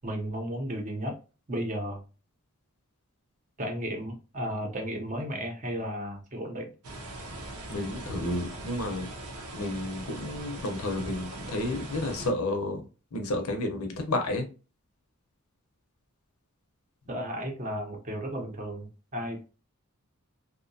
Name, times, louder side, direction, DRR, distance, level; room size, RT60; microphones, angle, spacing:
voice 1, 0.0-1.2 1.5-2.0 3.6-6.7 17.1-19.4, equal, 35° right, 0.7 m, -34 dB
sound 1, 6.8-12.3, right 2 dB, 80° right, 0.7 m, -40 dB
voice 2, 7.7-9.1 9.5-12.8 13.1-14.5, left 1 dB, 80° left, 0.7 m, -31 dB
2.7 x 2.2 x 2.6 m
head